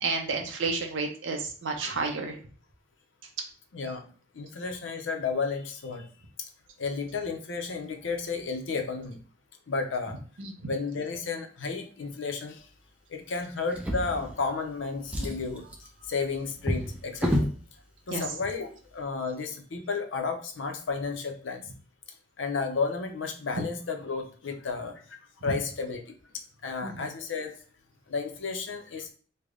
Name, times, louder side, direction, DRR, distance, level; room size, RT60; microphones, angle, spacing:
voice 1, 0.0-2.4 10.4-10.5 18.1-18.2 26.8-27.1, right 4 dB, 70° right, 3 dB, 0.7 m, -31 dB
voice 2, 3.7-6.1 6.4-6.5 6.8-9.2 9.7-10.2 10.7-12.7 13.1-15.6 16.0-17.3 18.1-21.7 22.4-27.5 28.1-29.1, left 4 dB, 70° left, 5 dB, 0.6 m, -33 dB
Drawer open or close, 13.7-14.7 15.0-17.6 18.5-18.6 19.0-19.1, equal, 5° right, 0.5 m, -31 dB
3.3 x 2.1 x 3.6 m, 0.42 s
head